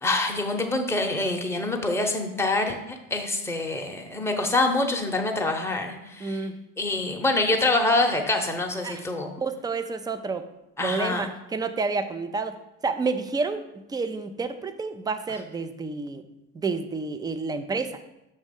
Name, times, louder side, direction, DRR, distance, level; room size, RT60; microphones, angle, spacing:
voice 1, 0.0-6.5 6.8-9.3 10.8-11.3, left 2 dB, 5° left, 2 dB, 0.9 m, -25 dB
voice 2, 6.2-6.6 8.8-9.0 9.4-10.5 10.8-12.5 12.8-16.2 16.5-18.0, right 4 dB, 10° right, 10 dB, 0.4 m, -29 dB
6.1 x 3.2 x 5.3 m, 0.90 s
hypercardioid pair, 80°, 39 cm